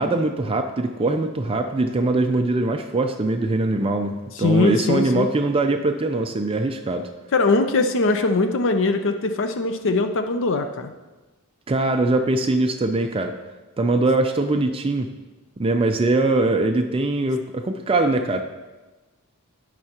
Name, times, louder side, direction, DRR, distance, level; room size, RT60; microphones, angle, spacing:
voice 1, 0.0-7.1 11.7-13.3 13.8-15.1 15.6-18.4, right 2 dB, 25° right, 5 dB, 0.4 m, -22 dB
voice 2, 4.4-5.3 7.3-10.9, left 3 dB, 60° left, 7 dB, 0.6 m, -21 dB
17.0 x 5.7 x 2.9 m, 1.2 s
head